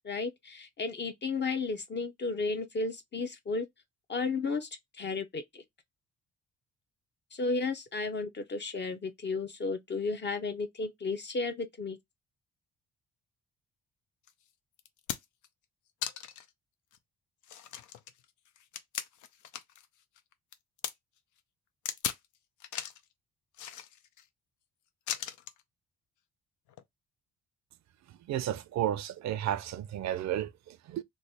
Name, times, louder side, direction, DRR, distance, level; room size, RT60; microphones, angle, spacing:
voice 1, 0.0-3.7 4.1-4.7 5.0-5.6 7.3-12.0, left 3 dB, 35° left, 0.6 m, -33 dB
sound 1, 14.3-14.4 14.8-15.5 16.0-16.5 16.9-17.0 17.4-19.9 20.2-20.9 21.9-22.3 22.6-23.0 23.5-24.2 25.1-25.6 26.7-26.8, left 10 dB, 75° left, 0.6 m, -38 dB
voice 2, 28.1-31.0, right 11 dB, 65° right, 0.5 m, -33 dB
3.2 x 2.1 x 4.0 m
cardioid pair, 90°, 30 cm